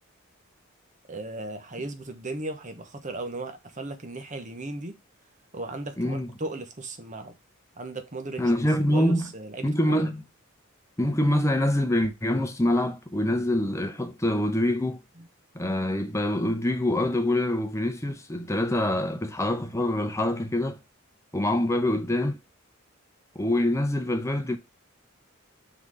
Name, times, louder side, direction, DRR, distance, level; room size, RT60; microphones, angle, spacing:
voice 1, 1.1-5.0 5.5-7.4 7.8-8.4 8.9-10.1 15.2-15.3, right 2 dB, 35° right, 1.1 m, -36 dB
voice 2, 6.0-6.3 8.4-9.3 9.6-10.2 11.0-15.0 15.5-20.8 21.3-22.4 23.3-24.6, left 1 dB, 15° left, 0.9 m, -25 dB
6.1 x 4.0 x 4.8 m
head